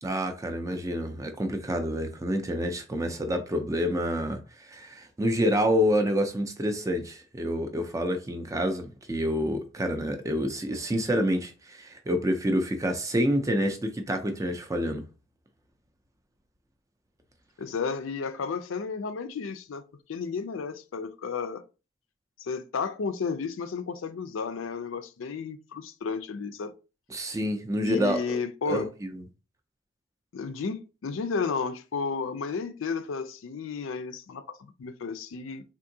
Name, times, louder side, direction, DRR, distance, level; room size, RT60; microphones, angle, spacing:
voice 1, 0.0-15.0 27.1-28.4 28.7-29.2, equal, 15° right, 0.4 m, -28 dB
voice 2, 17.6-21.6 22.4-26.7 27.8-28.9 30.3-35.6, left 5 dB, 75° left, 0.4 m, -33 dB
3.6 x 2.5 x 2.7 m
head